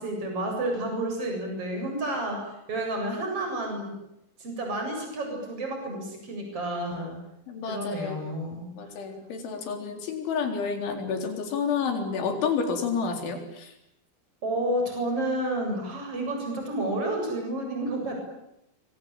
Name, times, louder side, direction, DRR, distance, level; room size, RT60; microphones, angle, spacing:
voice 1, 0.0-2.4 2.7-4.0 4.4-7.2 7.7-8.7 9.4-9.6 14.4-18.2, right 1 dB, 30° right, 2 dB, 8.8 m, -30 dB
voice 2, 7.5-8.2 8.8-13.7, left 5 dB, 70° left, 5 dB, 6.3 m, -30 dB
27.5 x 24.0 x 9.0 m, 0.84 s
omnidirectional pair, 5.6 m